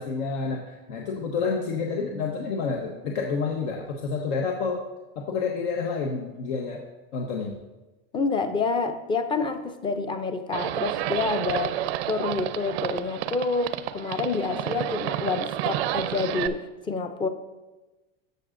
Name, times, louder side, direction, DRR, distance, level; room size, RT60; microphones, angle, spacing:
voice 1, 0.0-4.8 5.2-6.8 7.1-7.5, left 5 dB, 80° left, 0 dB, 1.1 m, -29 dB
voice 2, 8.1-11.7 12.1-17.3, left 4 dB, 15° left, 8 dB, 0.5 m, -28 dB
Livestock farm animals working animals, 10.5-16.5, right 13 dB, 85° right, 0.6 m, -30 dB
13.0 x 6.7 x 2.6 m, 1.1 s
supercardioid pair, 150°, 31 cm